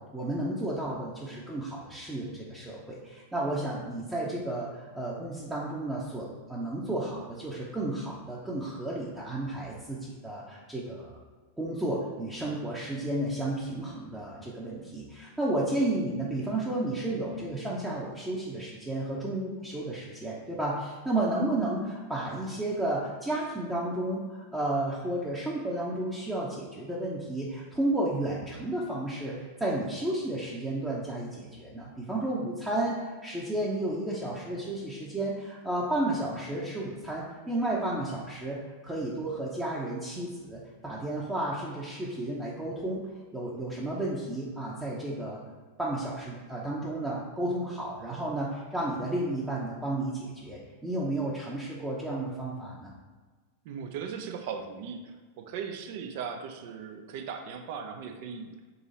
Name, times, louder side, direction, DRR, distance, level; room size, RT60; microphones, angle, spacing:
voice 1, 0.0-11.1 11.6-45.4 45.8-52.9, right 1 dB, 10° right, -6 dB, 0.7 m, -32 dB
voice 2, 53.6-58.5, right 6 dB, 55° right, 6 dB, 0.5 m, -38 dB
3.9 x 2.9 x 3.9 m, 1.4 s
hypercardioid pair, 95°, 0 cm